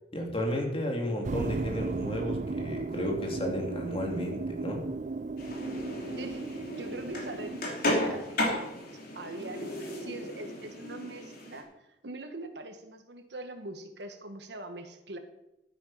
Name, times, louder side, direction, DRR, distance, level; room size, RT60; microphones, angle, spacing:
voice 1, 0.1-4.8, left 1 dB, 35° left, 1 dB, 2.8 m, -33 dB
sound 1, 1.2-8.2, right 3 dB, 45° right, 0.4 m, -36 dB
sound 2, 5.4-11.6, left 1 dB, 55° left, 3.3 m, -34 dB
voice 2, 6.2-8.8 9.1-11.7 12.0-15.2, right 2 dB, 70° right, 7 dB, 1.4 m, -42 dB
12.0 x 9.4 x 5.6 m, 0.90 s
head